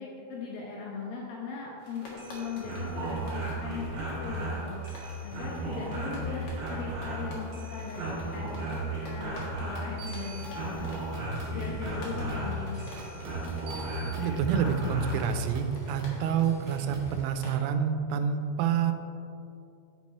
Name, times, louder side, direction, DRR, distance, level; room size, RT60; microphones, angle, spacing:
voice 1, 0.0-4.8 5.2-8.0 8.3-8.6 9.0-10.9 11.5-13.4, left 5 dB, 90° left, -3 dB, 2.0 m, -39 dB
sound 1, 1.8-17.6, left 1 dB, 60° left, 2.0 m, -49 dB
sound 2, 2.0-15.3, right 1 dB, 50° right, 3.1 m, -35 dB
sound 3, 9.8-17.1, right 2 dB, 65° right, 3.1 m, -42 dB
voice 2, 13.8-18.9, right 7 dB, 85° right, 7 dB, 3.0 m, -28 dB
11.0 x 4.7 x 4.2 m, 2.6 s
omnidirectional pair, 5.4 m